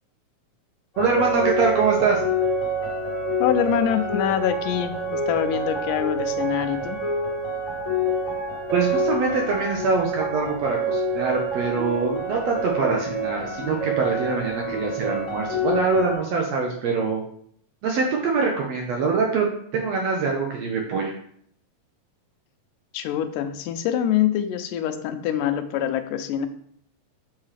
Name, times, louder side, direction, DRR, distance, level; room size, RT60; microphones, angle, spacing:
sound 1, 0.9-16.2, right 1 dB, 35° left, 1.3 m, -27 dB
voice 1, 1.0-2.2 8.7-17.2 17.8-19.5 19.7-21.1, right 4 dB, 75° right, 0 dB, 1.6 m, -24 dB
voice 2, 3.4-7.0 22.9-26.5, left 10 dB, 85° left, 10 dB, 2.1 m, -25 dB
7.3 x 4.6 x 3.3 m, 0.65 s
omnidirectional pair, 3.8 m